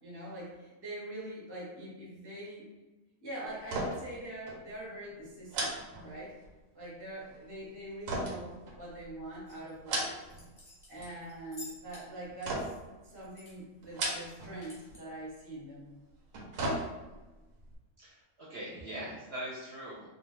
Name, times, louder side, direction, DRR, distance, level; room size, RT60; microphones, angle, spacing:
voice 1, 0.0-2.7 3.2-5.7 6.0-6.3 6.7-10.2 10.9-12.7 13.0-15.9, right 1 dB, 25° right, -5 dB, 0.7 m, -43 dB
sound 1, 3.6-4.2 4.5-4.6 5.5-6.6 8.1-9.2 9.7-10.5 10.8-11.4 12.4-13.0 13.8-14.6 14.9-15.0 16.1-17.3 17.7-17.8, right 2 dB, 90° right, 1.0 m, -36 dB
sound 2, 9.5-9.7 10.2-12.1 12.4-13.6 13.8-13.9 14.3-15.0, left 2 dB, 20° left, 0.6 m, -51 dB
voice 2, 18.0-20.1, right 1 dB, 60° right, -7 dB, 0.9 m, -42 dB
2.4 x 2.3 x 3.1 m, 1.2 s
omnidirectional pair, 1.4 m